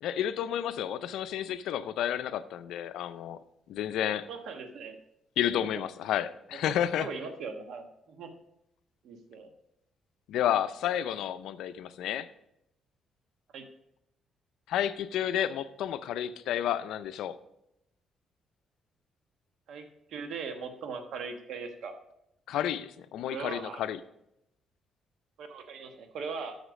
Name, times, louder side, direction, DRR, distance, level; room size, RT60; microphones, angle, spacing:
voice 1, 0.0-3.4 3.7-4.3 5.4-7.1 10.3-12.3 14.7-17.4 22.5-24.0, left 10 dB, 85° left, 13 dB, 0.5 m, -31 dB
voice 2, 4.3-5.0 5.6-5.7 6.5-6.6 7.0-8.3 9.0-9.5 13.5-13.7 19.7-22.0 23.3-23.9 25.4-26.6, right 5 dB, 75° right, 6 dB, 1.2 m, -40 dB
8.0 x 6.5 x 5.2 m, 0.82 s
cardioid pair, 90°, 0 cm